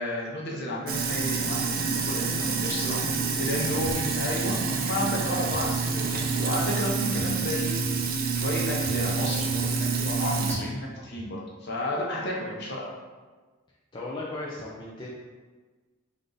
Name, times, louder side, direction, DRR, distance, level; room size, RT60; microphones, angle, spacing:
voice 1, 0.0-3.0 3.4-7.8 8.4-12.9, left 1 dB, 50° left, -3 dB, 0.8 m, -32 dB
Sink (filling or washing), 0.9-10.6, right 4 dB, 45° right, 0.4 m, -28 dB
voice 2, 2.6-3.8 13.9-15.1, left 2 dB, 20° left, -6 dB, 0.4 m, -38 dB
sound 1, 3.8-3.9 4.5-4.6 5.5-5.6 6.2-6.3 7.2-7.3 7.8-7.9 8.8-8.9 9.5-9.6 10.5-10.6 11.2-11.3, equal, 80° left, 0.8 m, -39 dB
3.6 x 2.6 x 3.8 m, 1.4 s
head